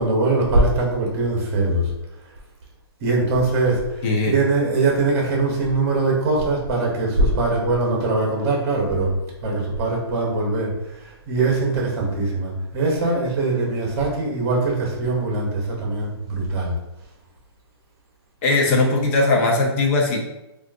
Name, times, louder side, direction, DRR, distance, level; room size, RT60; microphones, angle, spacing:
voice 1, 0.0-1.9 3.0-9.1 9.4-16.7, right 2 dB, 35° right, -1 dB, 1.0 m, -22 dB
voice 2, 4.0-4.4 18.4-20.3, left 2 dB, 30° left, 0 dB, 0.6 m, -19 dB
3.5 x 2.5 x 2.5 m, 0.91 s
hypercardioid pair, 155°, 14 cm